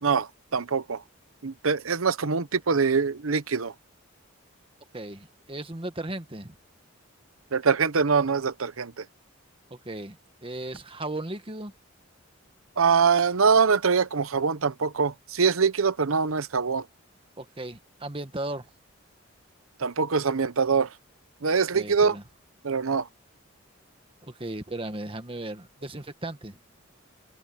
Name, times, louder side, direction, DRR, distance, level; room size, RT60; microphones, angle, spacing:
voice 1, 0.0-1.0 1.4-3.7 7.5-9.0 12.8-16.8 19.8-20.9 21.4-22.1 22.6-23.1, right 5 dB, 85° right, 0.9 m, -24 dB
voice 2, 4.9-6.5 9.7-11.7 17.4-18.7 21.7-22.2 24.2-26.6, right 1 dB, 25° right, 1.6 m, -36 dB
open air
head